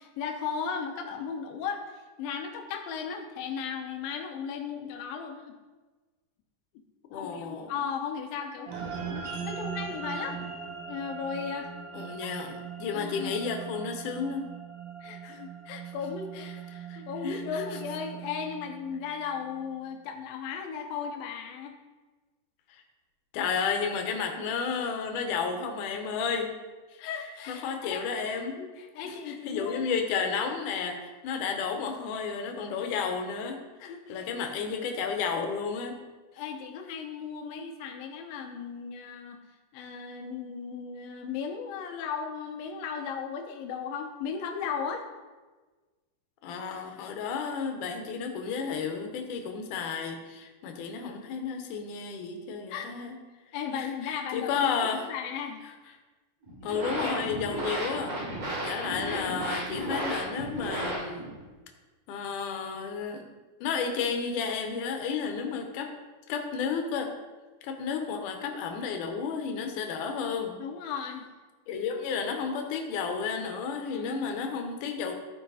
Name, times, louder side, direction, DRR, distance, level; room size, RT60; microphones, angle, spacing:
voice 1, 0.0-5.5 7.1-10.5 10.9-12.3 12.9-13.3 15.0-21.8 27.0-28.0 28.6-29.8 33.8-34.3 36.4-39.4 39.7-45.0 52.7-52.9 53.5-54.7 55.1-55.6 70.6-71.3 73.9-74.2, left 6 dB, 85° left, 4 dB, 2.7 m, -36 dB
voice 2, 7.1-7.7 11.9-14.5 16.9-17.6 22.7-22.8 23.3-26.5 26.9-27.0 27.5-28.6 29.0-36.0 46.4-53.2 53.7-55.1 56.6-58.2 58.6-61.3 62.1-63.3 63.6-65.9 66.3-67.1 67.6-70.6 71.7-75.1, left 6 dB, 70° left, 4 dB, 2.4 m, -32 dB
sound 1, 8.7-19.3, right 7 dB, 80° right, 2.9 m, -40 dB
sound 2, 56.4-61.4, right 1 dB, 55° right, 4.3 m, -34 dB
13.5 x 5.2 x 4.1 m, 1.3 s
omnidirectional pair, 4.0 m